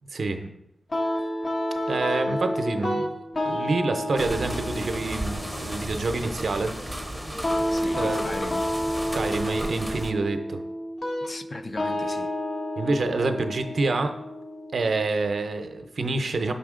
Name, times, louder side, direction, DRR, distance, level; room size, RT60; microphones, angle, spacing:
voice 1, 0.1-0.5 1.9-3.1 3.4-6.7 8.0-8.2 9.1-10.6 12.8-14.2 14.7-16.5, right 3 dB, 70° right, 0.6 m, -27 dB
sound 1, 0.9-15.9, left 1 dB, 65° left, 1.0 m, -30 dB
sound 2, 4.2-10.1, right 1 dB, ahead, 0.7 m, -34 dB
voice 2, 7.7-8.8 11.2-12.3, left 2 dB, 45° left, 0.5 m, -38 dB
5.7 x 5.5 x 3.7 m
cardioid pair, 60°, 0 cm